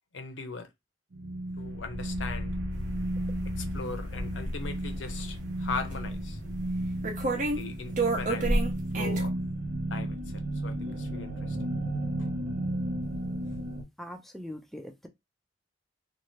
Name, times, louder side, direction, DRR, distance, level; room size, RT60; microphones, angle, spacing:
voice 1, 0.1-0.7 1.6-2.6 3.5-6.4 7.6-8.5 8.9-9.3 9.9-11.6, left 4 dB, 80° left, 0.7 m, -39 dB
sound 1, 1.1-13.8, right 1 dB, 80° right, 0.9 m, -33 dB
sound 2, 3.2-3.3 3.7-4.7 5.9-6.0 7.0-7.6 8.0-9.2, right 2 dB, 45° right, 0.6 m, -28 dB
voice 2, 14.0-15.1, left 1 dB, ahead, 0.4 m, -41 dB
2.7 x 2.4 x 3.1 m
head